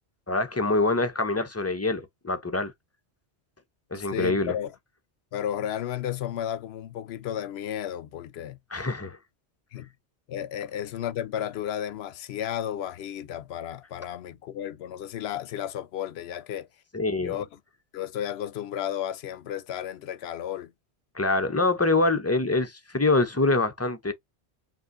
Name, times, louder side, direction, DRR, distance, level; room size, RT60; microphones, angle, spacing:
voice 1, 0.3-2.7 3.9-4.5 8.7-9.2 16.9-17.4 21.1-24.1, left 2 dB, 20° left, 0.4 m, -25 dB
voice 2, 3.9-4.7 5.3-8.6 9.7-9.9 10.3-16.7 17.2-17.5 17.9-20.7, left 10 dB, 70° left, 0.8 m, -33 dB
5.0 x 2.9 x 2.6 m
omnidirectional pair, 1.2 m